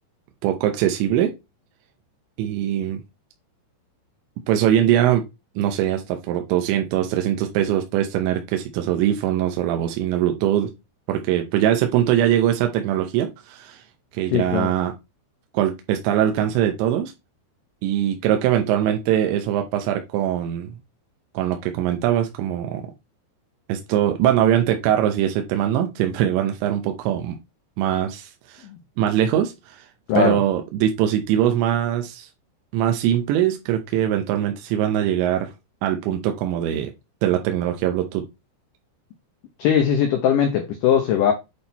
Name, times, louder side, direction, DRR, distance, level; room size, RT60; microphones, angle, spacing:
voice 1, 0.4-1.3 2.4-3.0 4.5-5.2 5.6-10.7 11.1-13.8 14.1-14.9 15.5-17.1 17.8-20.7 21.3-22.8 23.7-27.4 27.8-28.6 29.0-29.9 30.2-32.3 32.7-35.5 35.8-36.9 37.2-38.3, right 11 dB, 85° right, 3.2 m, -22 dB
voice 2, 14.3-14.7 28.6-28.8 30.1-30.4 39.6-41.3, left 8 dB, 80° left, 1.9 m, -20 dB
8.6 x 4.3 x 4.2 m
omnidirectional pair, 5.1 m